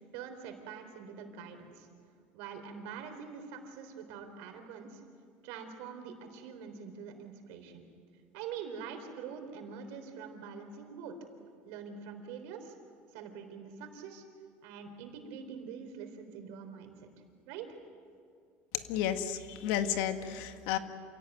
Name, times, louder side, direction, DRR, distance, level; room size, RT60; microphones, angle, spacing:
voice 1, 0.1-1.9 2.3-5.0 5.4-7.8 8.3-11.2 11.6-12.7 13.1-14.2 14.6-17.1 17.5-17.7, right 6 dB, 80° right, 6 dB, 3.8 m, -44 dB
voice 2, 18.7-20.8, left 10 dB, 85° left, 8 dB, 1.7 m, -32 dB
27.5 x 17.5 x 9.3 m, 2.2 s
cardioid pair, 150°, 5 cm